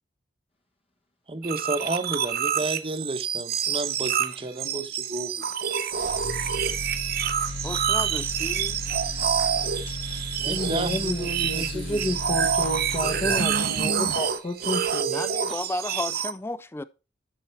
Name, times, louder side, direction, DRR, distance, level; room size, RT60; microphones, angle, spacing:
voice 1, 1.3-5.5 10.4-12.0 13.1-13.2, right 2 dB, 30° right, 1.0 m, -32 dB
sound 1, 1.4-16.3, right 8 dB, 55° right, 0.8 m, -27 dB
sound 2, 5.9-13.9, left 1 dB, 65° left, 1.4 m, -36 dB
voice 2, 7.6-8.8 15.1-16.8, left 2 dB, 15° left, 0.4 m, -33 dB
voice 3, 9.9-15.7, left 1 dB, 35° left, 1.1 m, -31 dB
12.5 x 5.7 x 4.5 m
head